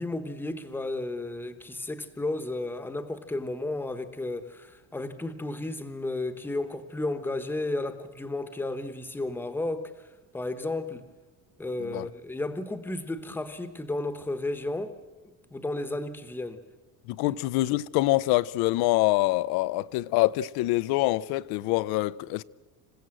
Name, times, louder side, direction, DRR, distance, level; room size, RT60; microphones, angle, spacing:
voice 1, 0.0-10.1 10.3-11.0 11.6-14.9 15.5-16.6 17.3-17.4, left 2 dB, 5° left, 1.0 m, -33 dB
voice 2, 17.1-22.4, left 18 dB, 90° left, 0.6 m, -25 dB
27.0 x 16.0 x 7.7 m
cardioid pair, 175°, 36 cm